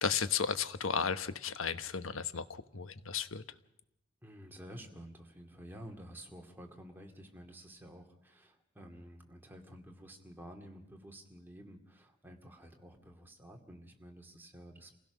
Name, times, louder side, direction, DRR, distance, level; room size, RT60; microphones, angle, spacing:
voice 1, 0.0-3.4, left 6 dB, 80° left, 12 dB, 1.1 m, -34 dB
voice 2, 4.2-15.0, equal, 10° right, 2 dB, 2.4 m, -51 dB
27.0 x 16.5 x 6.2 m, 0.78 s
head